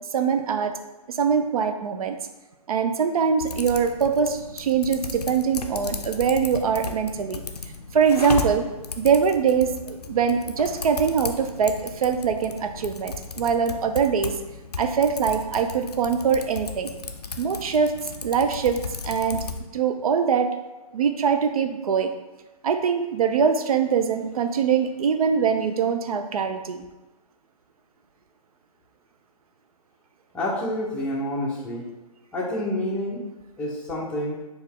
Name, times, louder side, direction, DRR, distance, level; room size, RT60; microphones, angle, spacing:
voice 1, 0.1-0.7 1.1-2.2 2.7-7.4 7.9-8.6 9.0-14.4 14.8-16.9 17.4-17.9 18.2-19.4 19.7-20.5 20.9-22.1 22.6-26.8, right 6 dB, 70° right, 7 dB, 0.4 m, -23 dB
Typing, 3.4-19.6, left 5 dB, 90° left, 0.4 m, -35 dB
voice 2, 30.3-31.8 32.3-33.2 33.6-34.4, left 1 dB, 5° left, -5 dB, 0.6 m, -28 dB
4.2 x 2.3 x 3.5 m, 1.1 s
figure-of-eight pair, 130°, 20 cm